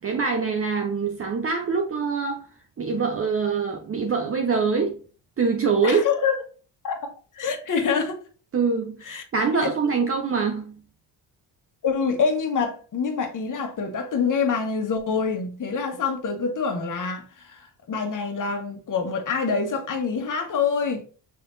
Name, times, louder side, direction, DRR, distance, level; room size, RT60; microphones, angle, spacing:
voice 1, 0.0-2.5 2.8-5.0 5.4-6.1 8.5-10.8, right 5 dB, 30° right, 0.8 m, -24 dB
voice 2, 5.8-6.3 6.8-8.2 9.1-9.2 11.8-21.0, left 5 dB, 45° left, 1.4 m, -26 dB
5.7 x 3.4 x 2.6 m
supercardioid pair, 70°, 43 cm